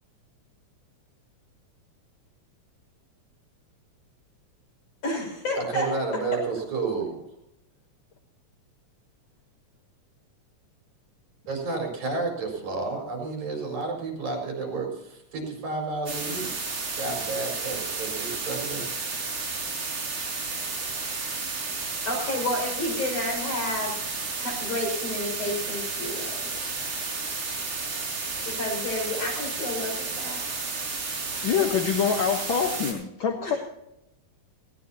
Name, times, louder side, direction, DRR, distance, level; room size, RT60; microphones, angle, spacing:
voice 1, 5.0-5.9 22.0-23.9 24.4-26.4 28.5-30.5 33.4-33.6, left 1 dB, 75° left, 0 dB, 7.6 m, -30 dB
voice 2, 5.6-7.2 11.5-18.9, right 3 dB, 65° right, 1 dB, 5.9 m, -31 dB
sound 1, 16.1-32.9, right 4 dB, 45° right, 5.7 m, -32 dB
voice 3, 31.4-33.6, left 7 dB, 55° left, 4 dB, 1.5 m, -25 dB
19.5 x 17.5 x 2.8 m, 0.84 s
omnidirectional pair, 3.5 m